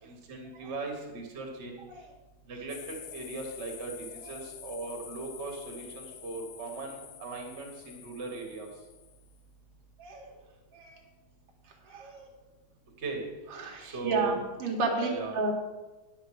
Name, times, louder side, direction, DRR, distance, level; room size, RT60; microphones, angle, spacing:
voice 1, 0.0-1.8 2.4-8.7 13.0-13.2 13.8-14.4 14.9-15.3, right 4 dB, 75° right, 0 dB, 0.6 m, -38 dB
sound 1, 2.7-9.4, left 9 dB, 75° left, 2.2 m, -48 dB
voice 2, 10.0-10.3 10.7-10.9 11.9-12.3 13.5-15.5, right 3 dB, 55° right, 0 dB, 2.0 m, -32 dB
9.7 x 6.6 x 6.3 m, 1.1 s
omnidirectional pair, 4.0 m